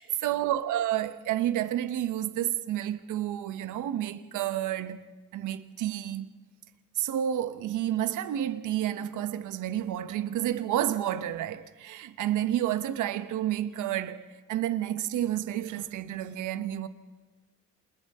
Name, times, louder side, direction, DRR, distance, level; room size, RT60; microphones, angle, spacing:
voice 1, 0.0-5.1 5.3-6.3 6.9-16.9, right 12 dB, 85° right, 1.1 m, -30 dB
28.5 x 27.5 x 3.7 m
cardioid pair, 90°, 30 cm